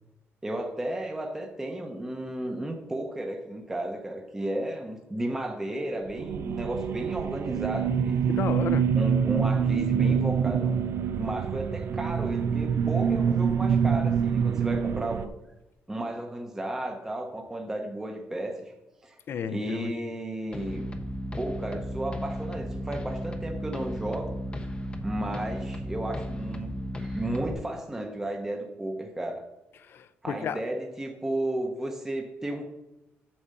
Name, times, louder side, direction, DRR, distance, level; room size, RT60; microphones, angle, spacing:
voice 1, 0.4-8.3 9.0-10.9 11.2-15.3 15.9-18.7 19.0-19.2 19.5-20.9 21.4-24.8 25.0-29.4 30.2-32.7, right 1 dB, 10° right, 2 dB, 0.9 m, -33 dB
sound 1, 6.0-15.3, right 7 dB, 60° right, 0.4 m, -26 dB
voice 2, 8.3-8.9 19.3-19.9 29.8-30.6, left 7 dB, 55° left, 13 dB, 0.6 m, -32 dB
sound 2, 20.5-27.5, equal, 20° left, 0.8 m, -34 dB
8.6 x 4.4 x 6.8 m, 0.98 s
cardioid pair, 145°, 5 cm